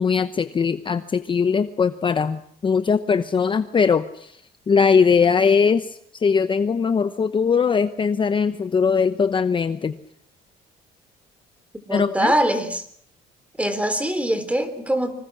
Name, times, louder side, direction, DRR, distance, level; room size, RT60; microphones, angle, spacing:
voice 1, 0.0-4.4 4.7-10.0 11.9-12.3, left 5 dB, 30° left, 11 dB, 0.9 m, -20 dB
voice 2, 11.9-12.9 13.6-15.1, right 1 dB, 10° right, 11 dB, 3.6 m, -23 dB
25.5 x 25.0 x 6.1 m, 0.65 s
cardioid pair, 110°, 17 cm